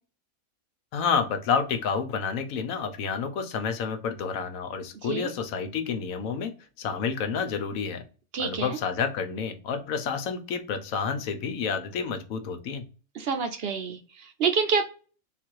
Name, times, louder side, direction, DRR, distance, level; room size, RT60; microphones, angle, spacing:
voice 1, 0.9-6.5 6.8-8.0 8.4-12.8, left 6 dB, 80° left, 7 dB, 1.1 m, -29 dB
voice 2, 8.3-8.8 13.1-14.9, right 5 dB, 55° right, 6 dB, 0.8 m, -27 dB
3.8 x 2.4 x 4.5 m, 0.36 s
omnidirectional pair, 1.4 m